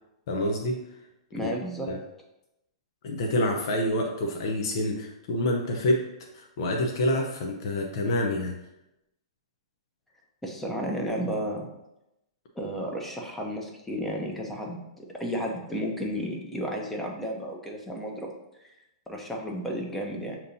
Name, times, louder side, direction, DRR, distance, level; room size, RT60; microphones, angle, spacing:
voice 1, 0.3-0.8 1.4-1.5 1.9-2.0 3.0-6.1 6.3-8.5, left 1 dB, 60° left, 1 dB, 0.6 m, -27 dB
voice 2, 1.3-1.9 10.4-11.7 12.5-18.3 18.6-18.7 19.1-20.4, equal, 5° left, 0 dB, 0.8 m, -32 dB
6.5 x 2.9 x 2.7 m, 0.90 s
hypercardioid pair, 125°, 3 cm